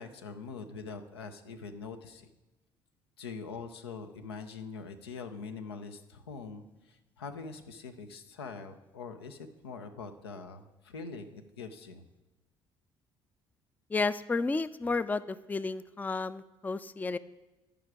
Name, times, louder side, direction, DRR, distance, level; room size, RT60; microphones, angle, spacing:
voice 1, 0.0-2.3 3.2-12.0, left 4 dB, 90° left, 7 dB, 0.6 m, -43 dB
voice 2, 13.9-17.2, left 3 dB, 15° left, 16 dB, 0.3 m, -32 dB
14.0 x 5.0 x 4.7 m, 1.1 s
hypercardioid pair, 55°, 13 cm